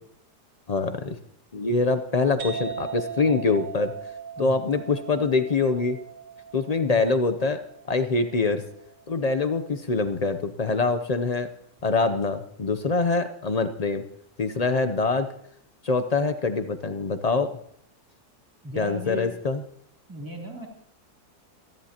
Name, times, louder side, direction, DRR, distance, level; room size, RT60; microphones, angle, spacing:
voice 1, 0.7-1.2 1.5-3.9 4.4-6.0 6.5-7.6 7.9-8.6 9.1-11.5 11.8-14.0 14.4-15.3 15.8-17.5 18.8-19.6, left 4 dB, 70° left, 9 dB, 0.3 m, -24 dB
sound 1, 2.4-9.8, right 6 dB, 80° right, 2.0 m, -39 dB
voice 2, 18.6-19.3 20.1-20.7, equal, 10° right, 0 dB, 2.8 m, -35 dB
28.0 x 11.0 x 2.9 m, 0.69 s
omnidirectional pair, 1.7 m